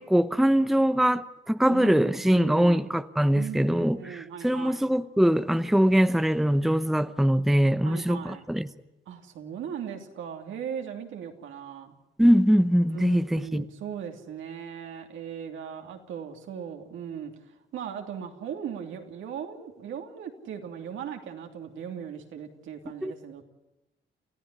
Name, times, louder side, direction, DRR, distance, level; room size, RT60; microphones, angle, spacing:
voice 1, 0.0-8.7 12.2-13.6 23.0-23.1, equal, ahead, 0.8 m, -22 dB
voice 2, 1.7-2.9 3.3-4.9 7.8-8.5 9.1-11.9 12.9-17.3 17.7-23.4, right 8 dB, 80° right, 3.1 m, -38 dB
28.5 x 15.0 x 9.8 m
cardioid pair, 90°, 20 cm